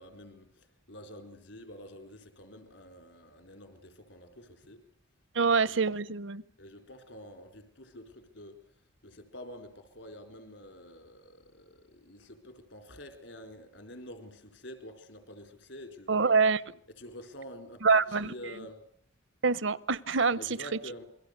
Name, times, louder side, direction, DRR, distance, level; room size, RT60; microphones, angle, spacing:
voice 1, 0.0-4.8 5.4-5.9 6.6-16.4 16.9-18.8 20.3-21.0, equal, 65° left, 8 dB, 4.4 m, -48 dB
voice 2, 5.3-6.4 16.1-16.6 17.8-18.3 19.4-20.4, right 4 dB, 70° right, 20 dB, 0.9 m, -25 dB
28.0 x 22.5 x 6.8 m, 0.64 s
head